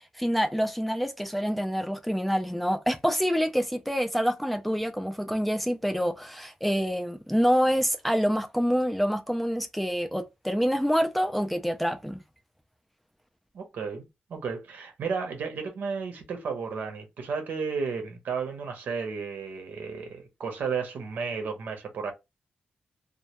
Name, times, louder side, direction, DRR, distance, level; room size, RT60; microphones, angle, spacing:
voice 1, 0.2-12.2, equal, 5° left, 0.3 m, -26 dB
voice 2, 13.5-22.1, right 5 dB, 85° right, 0.7 m, -33 dB
2.2 x 2.1 x 2.8 m
wide cardioid pair, 130°, 3 cm